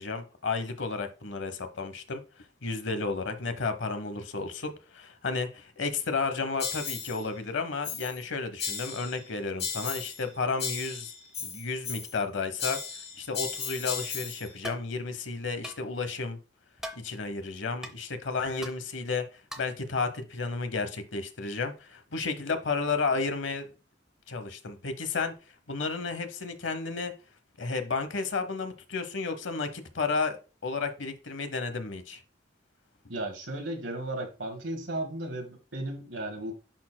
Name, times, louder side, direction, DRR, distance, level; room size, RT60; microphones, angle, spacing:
voice 1, 0.0-2.2 2.6-11.1 11.4-12.8 13.2-16.4 17.0-23.7 24.3-25.3 25.7-27.1 27.6-32.2, left 4 dB, 85° left, 0.9 m, -32 dB
sound 1, 6.6-7.2 7.8-8.2 8.6-9.2 9.6-10.3 10.6-12.2 12.6-14.5, left 6 dB, 30° left, 1.0 m, -35 dB
sound 2, 14.6-14.9 15.6-15.8 16.8-17.0 17.8-17.9 18.6-18.8 19.5-19.8, equal, 5° right, 0.7 m, -39 dB
voice 2, 33.1-36.5, right 1 dB, 90° right, 1.7 m, -35 dB
10.0 x 4.3 x 2.2 m
head